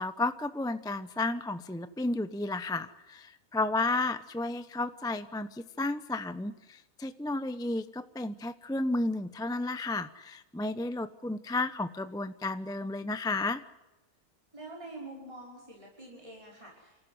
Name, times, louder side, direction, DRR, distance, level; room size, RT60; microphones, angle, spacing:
voice 1, 0.0-13.6, left 2 dB, 5° left, 11 dB, 0.7 m, -32 dB
voice 2, 14.5-17.1, right 2 dB, 20° right, -2 dB, 5.8 m, -46 dB
27.5 x 14.5 x 9.6 m, 1.0 s
omnidirectional pair, 1.6 m